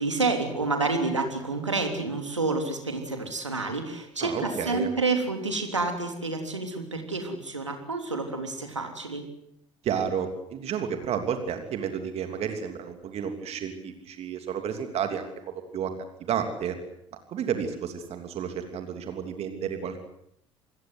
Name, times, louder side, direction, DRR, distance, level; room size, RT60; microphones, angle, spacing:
voice 1, 0.0-9.3, right 3 dB, 85° right, 5 dB, 3.3 m, -29 dB
voice 2, 4.2-4.9 9.8-15.9 16.3-16.8 17.3-20.1, right 8 dB, 45° right, 7 dB, 3.1 m, -31 dB
27.5 x 21.5 x 7.9 m, 0.74 s
figure-of-eight pair, 60°, 15 cm